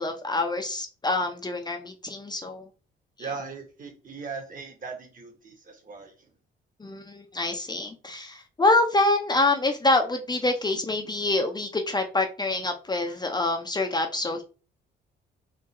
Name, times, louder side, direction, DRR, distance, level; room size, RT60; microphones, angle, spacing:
voice 1, 0.0-2.7 3.2-3.3 6.8-14.4, left 2 dB, 20° left, 4 dB, 0.6 m, -26 dB
voice 2, 3.2-6.3, right 5 dB, 45° right, 3 dB, 1.4 m, -39 dB
3.8 x 2.7 x 4.1 m, 0.35 s
cardioid pair, 90°, 20 cm